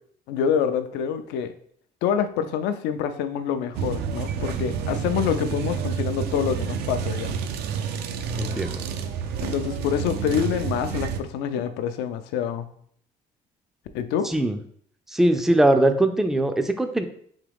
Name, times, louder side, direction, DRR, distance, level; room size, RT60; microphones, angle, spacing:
voice 1, 0.3-1.5 2.0-7.5 9.4-12.7 13.9-14.3, left 8 dB, 90° left, 9 dB, 0.4 m, -26 dB
sound 1, 3.7-11.2, right 7 dB, 75° right, 0.4 m, -29 dB
voice 2, 8.4-8.8 14.2-14.6 15.1-17.1, right 1 dB, ahead, 8 dB, 0.3 m, -21 dB
3.6 x 3.0 x 3.4 m, 0.62 s
cardioid pair, 110°, 17 cm